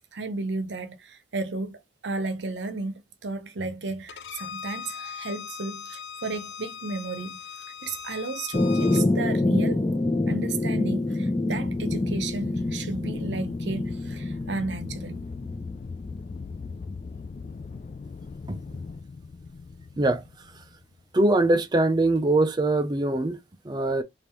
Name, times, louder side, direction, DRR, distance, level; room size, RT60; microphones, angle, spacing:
voice 1, 0.1-7.4 7.8-9.9 10.3-15.2, right 3 dB, 85° right, 0.8 m, -33 dB
Bowed string instrument, 4.1-9.0, left 7 dB, 85° left, 0.6 m, -39 dB
sound 1, 8.5-16.3, left 2 dB, 20° left, 0.8 m, -26 dB
Aircraft, 11.5-21.0, left 4 dB, 40° left, 0.3 m, -39 dB
voice 2, 21.1-24.0, right 2 dB, 25° right, 0.5 m, -23 dB
3.5 x 2.6 x 4.4 m
head